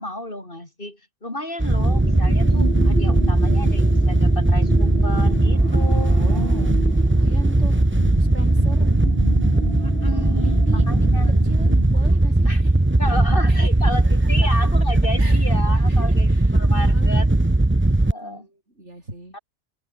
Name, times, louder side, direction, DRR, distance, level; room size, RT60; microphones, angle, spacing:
voice 1, 0.0-6.2 9.8-11.4 12.5-12.6 13.0-17.3 18.1-18.5 19.3-19.4, left 1 dB, 50° left, 7.3 m, -32 dB
Wind / Boat Water vehicle, 1.6-18.1, right 2 dB, 10° right, 0.9 m, -18 dB
sound 1, 1.8-12.0, right 3 dB, 55° right, 2.8 m, -31 dB
voice 2, 3.4-3.8 6.1-6.7 7.1-7.8 8.2-8.9 10.4-10.9 11.4-12.8 13.5-13.7 15.2-16.5 16.8-17.2 18.2-19.3, right 1 dB, 80° right, 8.4 m, -38 dB
omnidirectional pair, 1.2 m